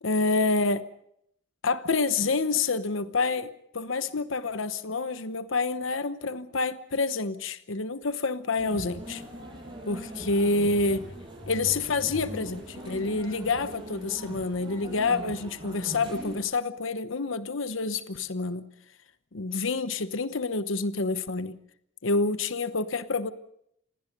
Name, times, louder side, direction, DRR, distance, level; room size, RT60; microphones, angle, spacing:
voice 1, 0.0-0.8 1.6-9.2 9.9-11.1 11.5-18.7 19.3-21.6 22.0-23.3, left 3 dB, 80° left, 12 dB, 1.0 m, -28 dB
sound 1, 8.6-16.4, equal, 25° right, 6.7 m, -41 dB
27.5 x 20.0 x 5.4 m, 0.74 s
head